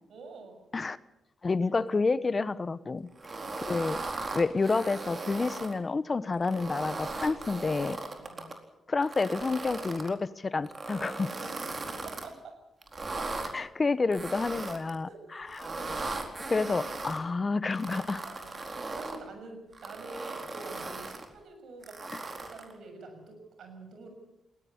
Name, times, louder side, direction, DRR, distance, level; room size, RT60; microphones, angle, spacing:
voice 1, 0.1-0.6 3.2-3.4 8.2-8.6 11.4-11.5 11.8-12.6 15.0-15.4 15.7-15.9 18.2-24.1, right 3 dB, 75° right, 5 dB, 6.8 m, -47 dB
voice 2, 1.4-3.1 3.6-4.0 4.3-8.0 8.9-11.3 13.4-15.7 16.5-18.2, left 3 dB, 35° left, 16 dB, 1.0 m, -29 dB
sound 1, 3.2-5.7 6.3-8.5 9.0-10.1 10.6-12.3 12.8-13.5 14.1-15.0 15.5-17.2 17.7-19.2 19.7-21.3 21.8-22.7, right 3 dB, 40° right, 4.3 m, -38 dB
20.0 x 17.5 x 9.5 m, 0.92 s
cardioid pair, 60°, 0 cm